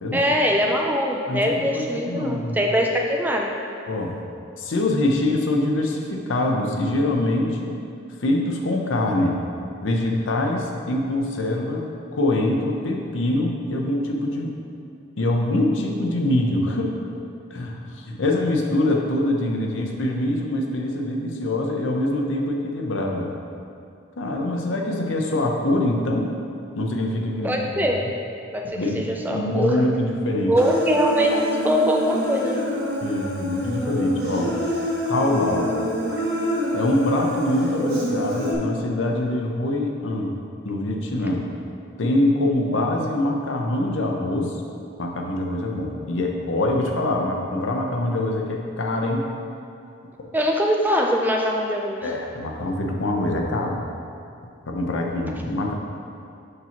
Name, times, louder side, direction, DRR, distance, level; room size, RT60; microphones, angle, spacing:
voice 1, 0.1-3.5 27.4-28.0 28.5-29.8 30.5-32.7 50.3-52.1, equal, 10° right, 0 dB, 0.3 m, -22 dB
voice 2, 1.3-2.6 3.9-4.2 4.6-7.7 8.2-9.4 9.8-14.5 15.2-17.0 17.5-23.3 24.2-26.3 26.8-27.9 28.8-30.6 33.0-34.5 35.1-35.7 36.7-40.4 40.6-41.5 42.0-44.6 45.0-49.3 50.2-50.3 52.0-53.8 54.7-55.7, left 1 dB, 75° left, 1 dB, 0.7 m, -24 dB
Human voice, 30.6-38.5, equal, 50° right, 1.1 m, -27 dB
6.6 x 5.7 x 2.9 m, 2.5 s
head